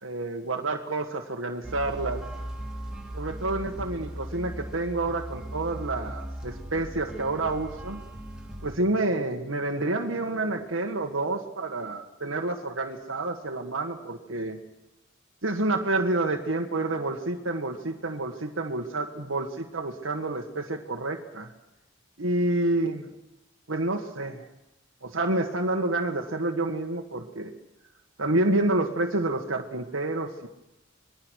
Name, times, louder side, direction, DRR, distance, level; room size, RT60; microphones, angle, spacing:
voice 1, 0.0-2.2 3.1-8.0 8.6-14.6 15.4-21.5 22.2-23.1 23.7-24.5 25.0-27.5 28.2-30.5, right 2 dB, 80° right, 2 dB, 1.8 m, -28 dB
sound 1, 1.6-8.8, right 1 dB, 5° right, 3.6 m, -38 dB
26.0 x 21.0 x 6.5 m, 0.94 s
head